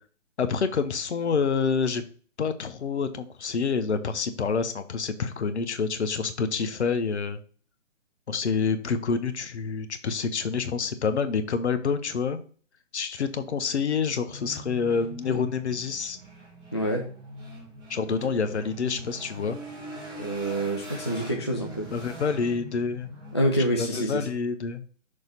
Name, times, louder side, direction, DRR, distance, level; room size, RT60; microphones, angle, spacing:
voice 1, 0.4-2.0 2.4-7.4 8.3-12.4 12.9-16.2 17.9-19.6 21.9-23.1 23.8-24.9, left 5 dB, 60° left, 10 dB, 0.9 m, -27 dB
sound 1, 14.3-23.4, right 1 dB, 10° right, 1.4 m, -42 dB
voice 2, 16.7-17.0 20.2-21.9 23.3-24.3, right 1 dB, 25° left, 0 dB, 0.4 m, -27 dB
6.4 x 2.9 x 5.4 m, 0.41 s
figure-of-eight pair, 145°, 38 cm